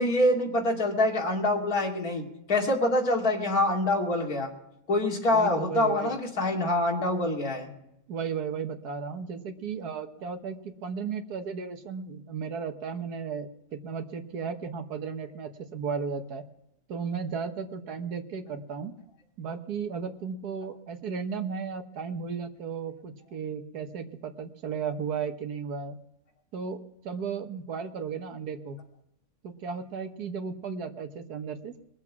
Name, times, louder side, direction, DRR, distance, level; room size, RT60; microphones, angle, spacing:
voice 1, 0.0-4.5 4.9-7.7, left 1 dB, 70° left, -1 dB, 3.0 m, -25 dB
voice 2, 5.2-6.1 8.1-16.4 16.9-18.9 19.4-26.0 26.5-28.8 29.4-31.7, right 6 dB, 90° right, 6 dB, 1.8 m, -35 dB
21.5 x 7.4 x 6.0 m, 0.85 s
omnidirectional pair, 1.6 m